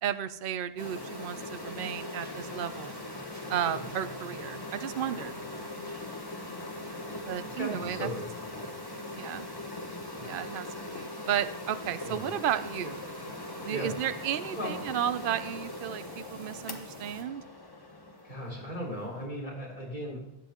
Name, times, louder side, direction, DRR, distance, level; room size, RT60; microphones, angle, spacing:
voice 1, 0.0-3.0 3.5-5.4 7.3-8.1 9.1-9.5 10.2-13.0 13.6-17.4, right 10 dB, 60° right, 12 dB, 0.8 m, -33 dB
sound 1, 0.8-19.2, left 2 dB, 25° left, 1.0 m, -41 dB
sound 2, 0.8-17.2, right 1 dB, 15° right, 1.5 m, -49 dB
voice 2, 7.6-8.3 8.5-8.6 10.1-10.3 12.0-12.3 13.7-13.9 14.6-14.7 18.2-20.2, equal, 50° left, -6 dB, 3.7 m, -37 dB
19.5 x 7.7 x 3.0 m, 0.87 s
omnidirectional pair, 1.0 m